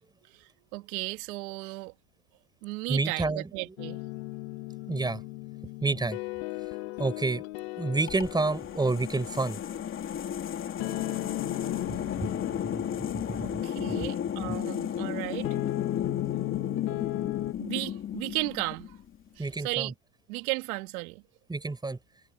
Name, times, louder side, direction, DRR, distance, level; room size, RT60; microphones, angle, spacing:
voice 1, 0.3-1.9 2.6-4.0 13.4-15.5 17.6-19.0 19.4-19.9 20.3-21.2, right 23 dB, 75° right, 2.7 m, -35 dB
voice 2, 2.9-3.7 4.9-5.2 5.8-6.2 7.0-7.4 7.8-9.6 11.9-12.3 12.6-12.8 13.3-14.0 14.5-14.6 19.4-19.9 21.5-22.0, right 3 dB, 10° right, 6.8 m, -29 dB
sound 1, 3.8-17.5, left 22 dB, 70° left, 2.4 m, -37 dB
sound 2, 8.1-19.2, left 9 dB, 30° left, 3.3 m, -34 dB
supercardioid pair, 140°, 44 cm